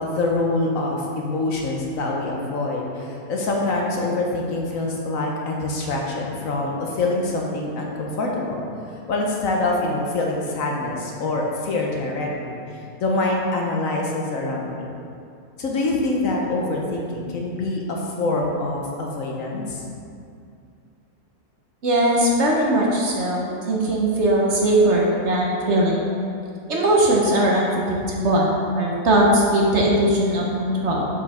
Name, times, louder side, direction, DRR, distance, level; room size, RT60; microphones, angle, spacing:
voice 1, 0.0-8.6 9.1-12.6 13.0-15.0 15.6-19.8, left 2 dB, 60° left, -1 dB, 1.2 m, -25 dB
voice 2, 21.8-26.1 26.7-31.1, right 1 dB, 55° right, -2 dB, 1.1 m, -20 dB
7.0 x 5.3 x 4.2 m, 2.4 s
omnidirectional pair, 1.6 m